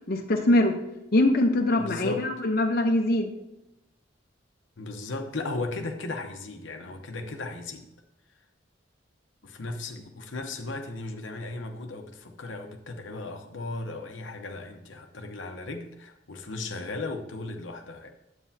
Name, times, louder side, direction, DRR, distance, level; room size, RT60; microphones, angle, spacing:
voice 1, 0.1-0.7 1.1-3.3, left 1 dB, 55° left, 3 dB, 0.8 m, -23 dB
voice 2, 1.8-2.2 4.8-7.9 9.4-18.2, left 2 dB, 80° left, 4 dB, 0.9 m, -36 dB
9.3 x 8.3 x 2.8 m, 0.90 s
head